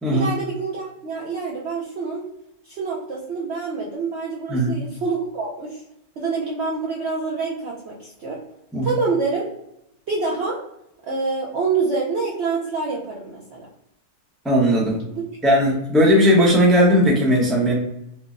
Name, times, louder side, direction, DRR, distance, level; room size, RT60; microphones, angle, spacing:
voice 1, 0.1-2.2 2.6-5.8 6.2-8.4 8.8-9.5 10.1-10.6 11.1-13.7 15.1-15.2, right 4 dB, 60° right, -4 dB, 0.7 m, -26 dB
voice 2, 14.4-15.0 15.4-17.7, equal, ahead, -4 dB, 0.5 m, -17 dB
4.5 x 2.1 x 2.5 m, 0.80 s
omnidirectional pair, 1.6 m